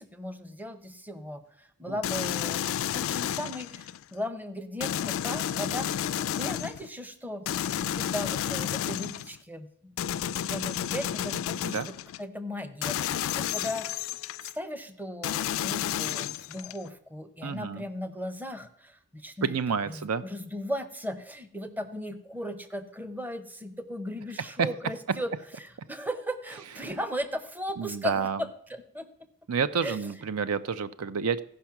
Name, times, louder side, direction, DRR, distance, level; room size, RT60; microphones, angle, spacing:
voice 1, 0.0-6.0 6.3-7.5 7.8-9.9 10.5-14.1 14.4-19.5 19.9-25.3 25.6-29.1 29.8-30.0, equal, 10° right, 9 dB, 0.7 m, -37 dB
sound 1, 2.0-4.0 4.8-6.9 7.5-9.4 10.0-12.2 12.8-14.5 15.2-16.9, left 10 dB, 65° left, 0.3 m, -31 dB
voice 2, 17.4-17.8 19.4-20.2 24.6-24.7 27.8-28.4 29.5-31.4, right 6 dB, 80° right, 14 dB, 0.5 m, -29 dB
15.0 x 5.4 x 5.9 m, 0.70 s
head